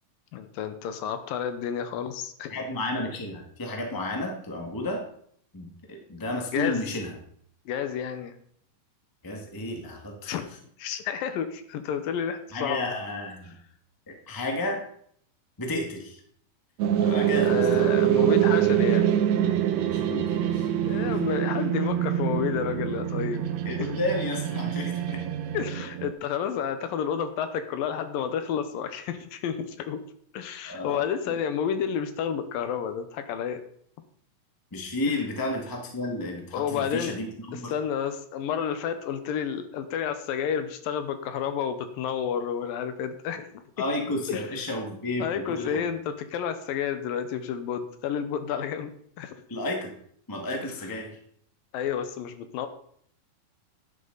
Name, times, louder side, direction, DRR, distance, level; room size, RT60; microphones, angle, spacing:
voice 1, 0.3-2.5 6.5-6.9 7.7-8.3 10.3-10.5 10.8-12.9 17.4-19.2 20.9-23.5 23.8-24.0 25.5-30.0 30.3-33.6 35.1-35.2 36.5-37.1 37.5-43.6 44.3-44.5 45.2-48.9 49.2-49.3 51.7-52.7, left 8 dB, 85° left, 9 dB, 2.7 m, -30 dB
voice 2, 2.5-5.1 5.5-7.1 9.2-10.4 12.5-13.6 14.1-14.8 15.6-16.2 17.0-17.9 19.8-20.7 21.0-21.2 23.6-25.2 30.6-31.0 31.3-31.4 34.7-37.7 43.8-45.8 49.5-49.9 50.3-51.2, left 2 dB, 15° left, 1 dB, 0.8 m, -32 dB
sound 1, 16.8-26.1, right 11 dB, 70° right, 1.7 m, -25 dB
11.5 x 11.0 x 4.0 m, 0.64 s
omnidirectional pair, 4.0 m